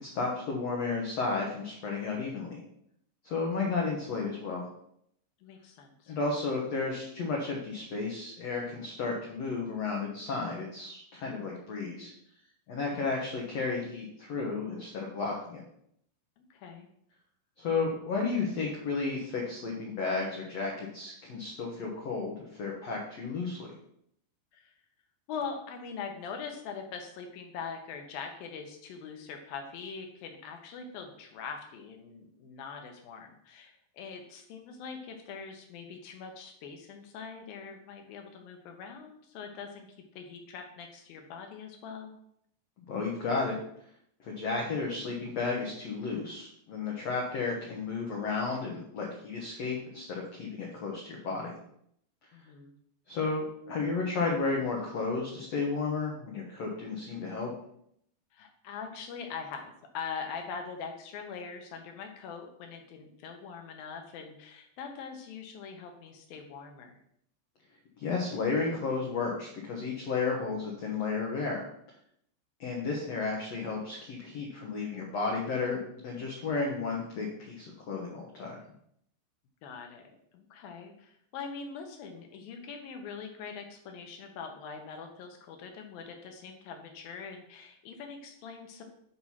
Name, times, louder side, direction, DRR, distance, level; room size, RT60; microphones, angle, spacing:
voice 1, 0.0-2.6 3.2-4.7 6.1-12.1 12.7-15.6 17.6-23.7 42.9-43.6 44.2-51.6 53.1-57.5 68.0-71.6 72.6-78.6, left 4 dB, 85° left, -1 dB, 1.4 m, -33 dB
voice 2, 5.4-6.2 12.9-13.1 16.4-16.9 24.5-24.7 25.3-39.9 40.1-42.1 52.3-52.7 58.3-67.0 79.6-88.8, left 6 dB, 70° left, 4 dB, 2.4 m, -42 dB
8.7 x 4.7 x 5.7 m, 0.71 s
omnidirectional pair, 5.0 m